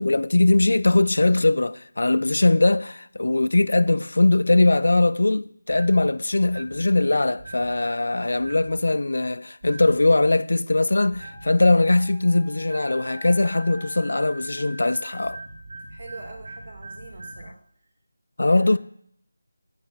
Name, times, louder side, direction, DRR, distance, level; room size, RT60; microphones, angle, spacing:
voice 1, 0.0-15.4 18.4-18.8, left 2 dB, 70° left, 0.3 m, -20 dB
sound 1, 5.7-6.1 6.4-6.8 7.4-7.7 8.4-8.8 9.6-10.0 11.1-11.5 12.7-17.5, right 2 dB, 65° right, 2.0 m, -41 dB
sound 2, 11.2-13.9, left 2 dB, 10° left, 1.1 m, -48 dB
voice 2, 15.9-17.6 18.4-18.8, right 2 dB, 35° right, 1.1 m, -43 dB
7.4 x 5.4 x 4.3 m
figure-of-eight pair, 175°, 0 cm